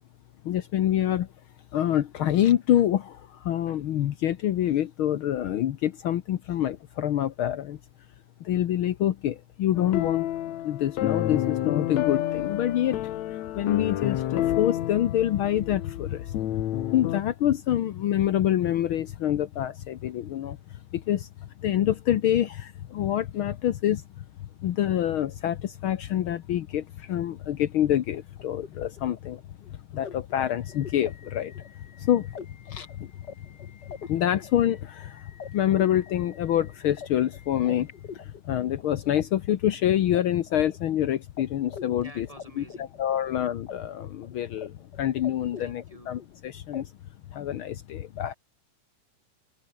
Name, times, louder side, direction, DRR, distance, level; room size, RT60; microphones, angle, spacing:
voice 1, 0.4-1.3 1.7-7.8 8.4-10.3 10.6-13.0 13.5-16.4 16.9-20.6 20.9-21.3 21.6-24.2 24.6-29.4 29.7-31.5 32.0-32.3 32.7-33.1 34.0-37.9 38.1-42.3 42.6-46.9 47.3-48.3, left 11 dB, 85° left, 1.1 m, -26 dB
sound 1, 9.7-17.2, left 13 dB, 65° left, 2.2 m, -29 dB
sound 2, 28.1-39.2 39.5-41.0 41.4-41.5 41.7-43.7 44.0-44.7 44.9-46.3 46.7-46.8, left 6 dB, 40° left, 2.0 m, -44 dB
voice 2, 42.0-42.9 45.6-46.2, right 1 dB, 10° right, 4.3 m, -49 dB
omnidirectional pair, 3.7 m